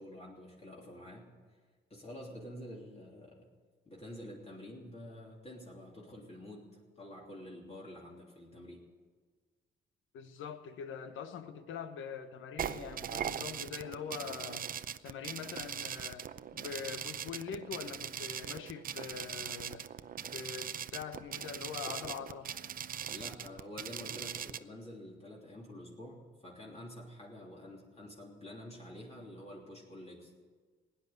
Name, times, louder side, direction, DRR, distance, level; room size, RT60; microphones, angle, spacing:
voice 1, 0.0-1.3 1.9-3.5 3.8-8.9 23.1-30.3, left 1 dB, 30° left, -2 dB, 3.2 m, -48 dB
voice 2, 10.1-14.7 15.0-19.9 20.2-22.5, left 7 dB, 85° left, 10 dB, 1.2 m, -43 dB
sound 1, 12.6-24.6, right 9 dB, 45° right, 0.6 m, -40 dB
17.0 x 10.0 x 8.1 m, 1.5 s
cardioid pair, 90°, 20 cm